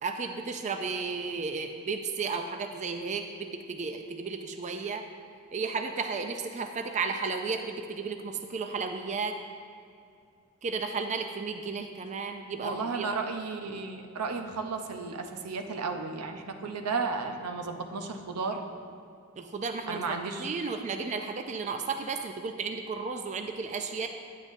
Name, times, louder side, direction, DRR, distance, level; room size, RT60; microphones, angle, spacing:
voice 1, 0.0-5.1 5.5-9.4 10.6-13.1 19.4-24.1, right 4 dB, 30° right, 6 dB, 0.4 m, -33 dB
voice 2, 12.6-18.6 19.9-20.5, right 4 dB, 85° right, 4 dB, 0.7 m, -33 dB
9.6 x 9.2 x 2.7 m, 2.4 s
head